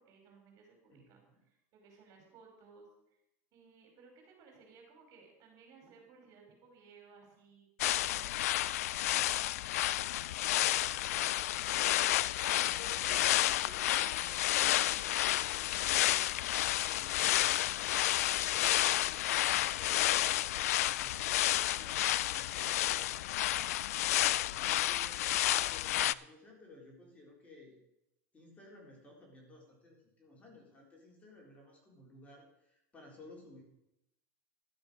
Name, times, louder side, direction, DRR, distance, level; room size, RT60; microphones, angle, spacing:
voice 1, 0.0-3.2 3.5-7.7 8.0-8.8 9.2-10.6, right 5 dB, 45° right, 1 dB, 5.1 m, -60 dB
voice 2, 0.9-1.4 12.8-16.3 16.8-17.8 18.5-23.9 24.3-27.8 28.3-33.6, left 2 dB, 20° left, -1 dB, 3.8 m, -56 dB
sound 1, 7.8-26.1, left 15 dB, 80° left, 0.4 m, -31 dB
13.0 x 7.9 x 6.6 m, 0.84 s
supercardioid pair, 125°, 8 cm